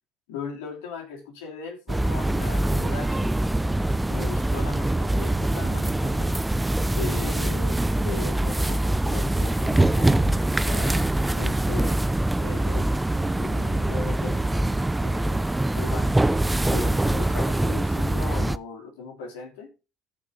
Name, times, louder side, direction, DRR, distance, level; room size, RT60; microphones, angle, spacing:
voice 1, 0.3-3.3 4.1-6.3 6.9-12.0 12.4-12.9 13.3-15.5 15.7-16.2 16.7-19.7, left 5 dB, 80° left, 2 dB, 3.2 m, -38 dB
sound 1, 1.9-18.6, right 1 dB, 10° right, 0.5 m, -24 dB
14.0 x 5.5 x 3.8 m, 0.30 s
hypercardioid pair, 70°, 0 cm